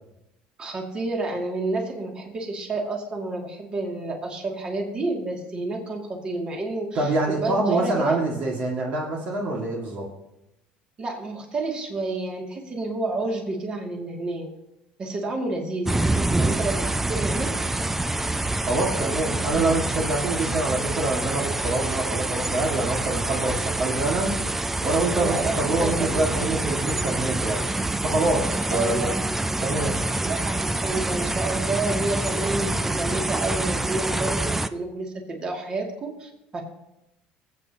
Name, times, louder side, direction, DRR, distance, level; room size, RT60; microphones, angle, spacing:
voice 1, 0.6-8.2 11.0-14.5 15.0-17.9 25.2-26.5 28.7-29.1 30.2-36.6, right 2 dB, 30° right, 0 dB, 2.4 m, -30 dB
voice 2, 7.0-10.1 18.6-24.4 24.8-27.6 28.0-29.1 29.6-30.0, right 2 dB, 50° right, -2 dB, 2.0 m, -25 dB
sound 1, 15.9-34.7, right 2 dB, 10° right, 0.4 m, -26 dB
25.0 x 8.4 x 2.9 m, 0.90 s
cardioid pair, 125°, 3 cm